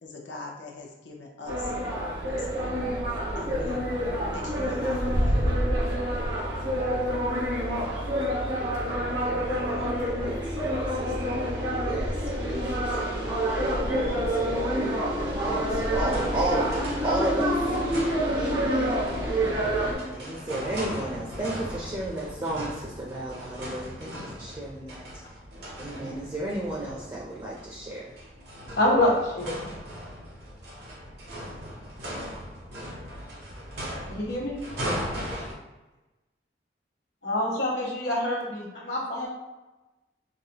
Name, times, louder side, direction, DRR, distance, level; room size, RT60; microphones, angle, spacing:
voice 1, 0.0-1.7 2.3-2.9 3.3-3.8 4.3-5.6, left 3 dB, 90° left, -1 dB, 0.6 m, -42 dB
sound 1, 1.5-20.0, equal, 90° right, 1.1 m, -27 dB
voice 2, 8.4-17.5 18.3-19.3 19.8-25.0 25.8-28.1, right 1 dB, 25° right, -5 dB, 0.4 m, -34 dB
sound 2, 16.1-35.5, equal, 70° right, 0.8 m, -39 dB
voice 3, 28.8-29.6 34.1-34.6 37.2-39.3, left 1 dB, 70° left, -4 dB, 1.1 m, -26 dB
4.8 x 2.0 x 2.8 m, 1.1 s
head